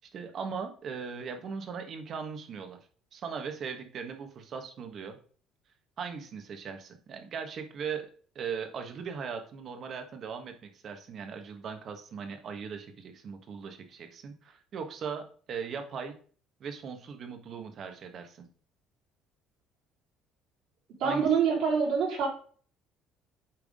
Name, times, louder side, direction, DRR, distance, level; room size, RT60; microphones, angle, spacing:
voice 1, 0.1-2.8 3.1-5.2 6.0-8.1 8.3-16.1 16.6-18.4 21.0-21.3, right 6 dB, 50° right, 6 dB, 1.3 m, -39 dB
voice 2, 21.0-22.3, right 6 dB, 70° right, -3 dB, 3.7 m, -25 dB
9.0 x 3.6 x 3.6 m, 0.44 s
cardioid pair, 110°, 0 cm